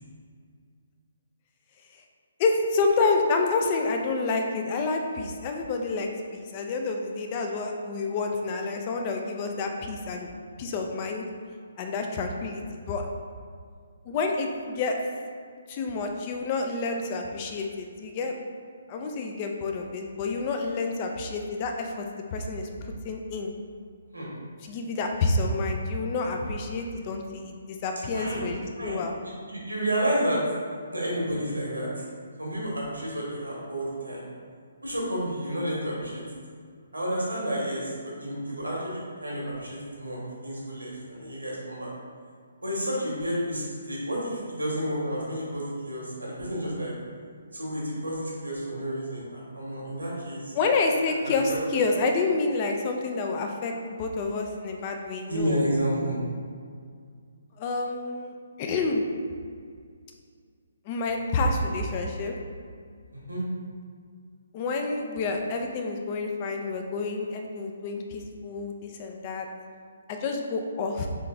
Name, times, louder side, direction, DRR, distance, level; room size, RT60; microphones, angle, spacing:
voice 1, 2.4-10.3 10.6-11.2 11.8-13.1 14.1-15.0 15.7-18.3 18.9-22.1 22.3-23.5 24.6-29.1 50.5-55.6 57.6-59.1 60.9-62.3 64.5-69.5 70.1-71.1, left 3 dB, 30° left, 3 dB, 0.5 m, -28 dB
voice 2, 28.1-28.4 28.8-29.0 29.5-30.4 30.9-31.9 32.4-34.2 34.8-36.2 36.9-40.2 40.4-41.9 42.6-46.9 47.5-50.5 51.2-51.6 55.3-56.2 63.3-63.4, equal, 90° right, -5 dB, 1.5 m, -30 dB
3.8 x 3.3 x 3.7 m, 2.1 s
figure-of-eight pair, 135°, 0 cm